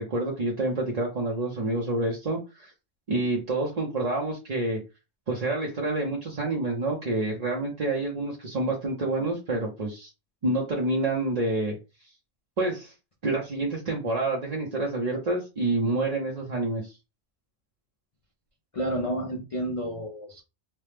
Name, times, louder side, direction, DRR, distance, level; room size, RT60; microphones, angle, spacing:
voice 1, 0.0-2.7 3.1-4.8 5.3-10.1 10.4-11.8 12.6-12.9 13.2-17.0, right 2 dB, 45° right, 0.6 m, -28 dB
voice 2, 18.7-20.4, equal, 50° left, 0.4 m, -30 dB
3.0 x 2.0 x 3.2 m
omnidirectional pair, 1.2 m